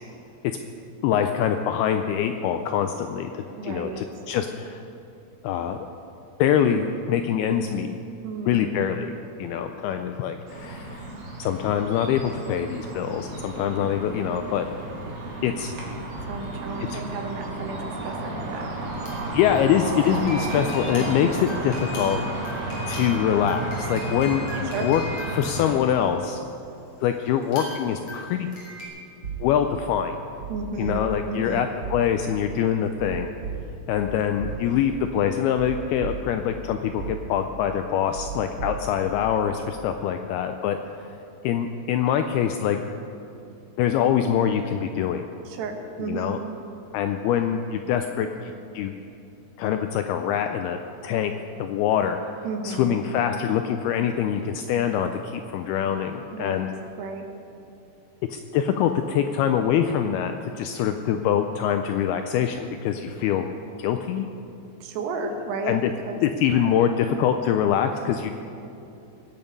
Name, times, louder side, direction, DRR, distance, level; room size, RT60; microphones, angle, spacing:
voice 1, 1.0-4.8 5.4-5.8 6.4-7.9 8.5-11.1 11.4-14.7 15.4-15.7 16.9-17.0 19.3-22.2 22.9-25.0 25.3-26.4 27.0-28.5 29.4-30.2 30.8-33.3 33.9-40.8 41.1-41.2 41.4-42.8 43.8-45.3 46.0-46.4 46.9-48.9 49.6-51.3 51.6-52.2 52.6-56.7 58.3-63.5 63.8-64.3 65.3-65.9 66.2-68.3, left 9 dB, 85° left, 6 dB, 2.3 m, -24 dB
voice 2, 3.6-4.0 8.2-8.8 16.3-18.7 24.6-24.9 30.5-31.7 45.5-46.4 52.4-53.0 56.3-56.6 57.0-57.3 64.8-65.8 66.1-66.2 68.2-68.3, right 4 dB, 75° right, 4 dB, 3.3 m, -33 dB
sound 1, 10.5-25.7, right 2 dB, 55° right, 3.6 m, -32 dB
sound 2, 18.9-26.4 27.4-28.9, left 2 dB, 35° left, 3.9 m, -40 dB
sound 3, 29.2-29.9 30.4-31.5 31.8-32.4 33.0-35.0 35.6-36.6 37.0-37.6 38.1-39.5, right 4 dB, 40° right, 1.9 m, -36 dB
22.5 x 9.1 x 5.3 m, 2.8 s
omnidirectional pair, 5.0 m